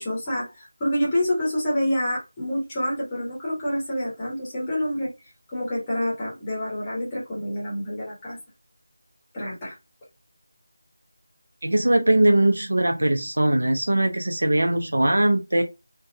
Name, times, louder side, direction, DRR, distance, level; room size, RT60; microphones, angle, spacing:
voice 1, 0.0-5.1 5.5-8.4 9.3-9.7, equal, 10° left, 0.8 m, -27 dB
voice 2, 11.6-15.6, right 1 dB, 75° right, 0.5 m, -20 dB
3.3 x 2.1 x 2.6 m
figure-of-eight pair, 180°, 0 cm